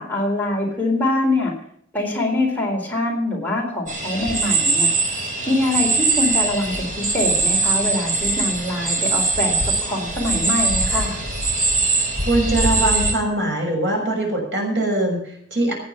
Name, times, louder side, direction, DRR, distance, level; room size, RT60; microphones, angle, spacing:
voice 1, 0.0-1.5 1.9-4.9 5.5-9.6 9.8-11.2, left 2 dB, 10° left, -2 dB, 4.2 m, -23 dB
sound 1, 3.9-13.1, right 3 dB, 45° right, 3.8 m, -21 dB
voice 2, 12.2-15.7, right 1 dB, 85° right, 1 dB, 6.3 m, -22 dB
15.5 x 9.8 x 5.8 m, 0.67 s
head